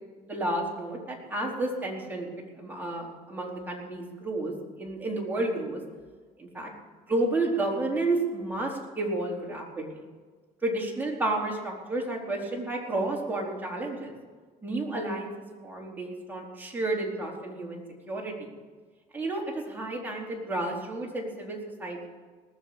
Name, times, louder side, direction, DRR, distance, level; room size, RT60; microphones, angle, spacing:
voice 1, 0.2-5.8 6.4-6.7 7.1-10.0 10.6-14.1 14.6-15.3 15.6-17.8 18.1-18.5 19.1-22.1, right 2 dB, 10° right, -2 dB, 4.2 m, -31 dB
19.5 x 7.3 x 8.8 m, 1.4 s
cardioid pair, 110°, 17 cm